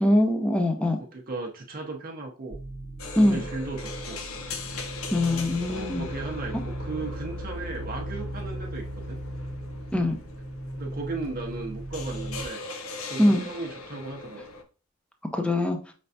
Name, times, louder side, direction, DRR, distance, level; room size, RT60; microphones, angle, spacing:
voice 1, 0.0-1.0 3.2-3.4 5.1-6.0 9.9-10.1 13.2-13.5 15.3-15.8, left 1 dB, 5° left, 4 dB, 0.6 m, -22 dB
voice 2, 0.8-2.6 3.2-4.2 5.7-9.2 10.8-12.6 13.1-14.5, right 3 dB, 45° right, 0 dB, 0.7 m, -36 dB
sound 1, 2.5-12.5, right 1 dB, 60° left, 1.5 m, -37 dB
sound 2, 3.0-14.6, left 3 dB, 85° left, 0.7 m, -40 dB
5.2 x 3.3 x 2.7 m, 0.37 s
head